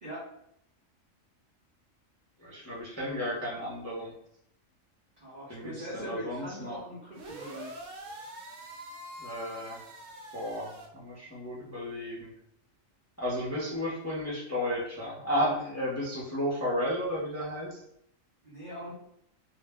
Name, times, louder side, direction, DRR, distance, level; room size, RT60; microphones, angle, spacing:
voice 1, 2.4-4.1 5.5-6.8 9.2-9.8 10.3-12.3 13.2-17.8, equal, 20° left, -7 dB, 0.5 m, -33 dB
voice 2, 5.2-7.8 18.4-18.9, equal, 45° right, -7 dB, 0.6 m, -42 dB
sound 1, 7.1-10.9, right 1 dB, 75° right, 0.9 m, -45 dB
2.5 x 2.0 x 3.4 m, 0.75 s
omnidirectional pair, 1.4 m